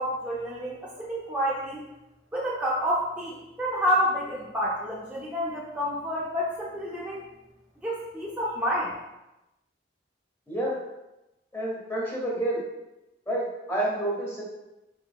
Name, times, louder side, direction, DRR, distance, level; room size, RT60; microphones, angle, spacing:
voice 1, 0.0-1.9 2.3-7.2 7.8-8.9, equal, 5° right, -6 dB, 0.4 m, -29 dB
voice 2, 11.5-12.6 13.3-14.4, right 1 dB, 15° left, -4 dB, 0.9 m, -29 dB
3.7 x 3.7 x 2.3 m, 0.97 s
head